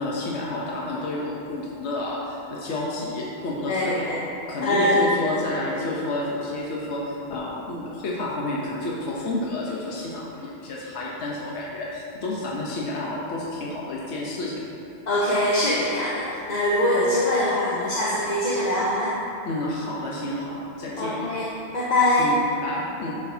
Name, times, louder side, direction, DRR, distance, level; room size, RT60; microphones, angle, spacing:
voice 1, 0.0-4.1 4.5-14.6 19.4-21.2 22.2-23.2, left 2 dB, 80° left, -4 dB, 1.2 m, -30 dB
voice 2, 3.7-4.2 4.6-5.0 15.1-19.1 21.0-22.3, left 1 dB, 40° left, -7 dB, 1.0 m, -23 dB
9.5 x 6.4 x 2.7 m, 2.8 s
omnidirectional pair, 1.1 m